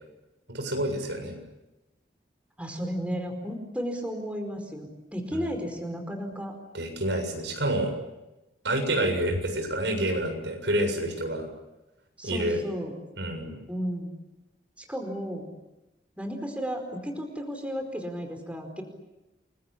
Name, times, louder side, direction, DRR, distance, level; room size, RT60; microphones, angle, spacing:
voice 1, 0.5-1.3 5.3-5.5 6.7-7.9 8.6-11.4 12.2-12.6 13.2-13.6, right 1 dB, 80° right, 5 dB, 7.4 m, -28 dB
voice 2, 2.6-6.6 12.2-12.9 13.7-14.1 14.8-15.5 16.2-18.8, equal, 5° right, 4 dB, 4.6 m, -33 dB
30.0 x 23.0 x 8.5 m, 0.99 s
head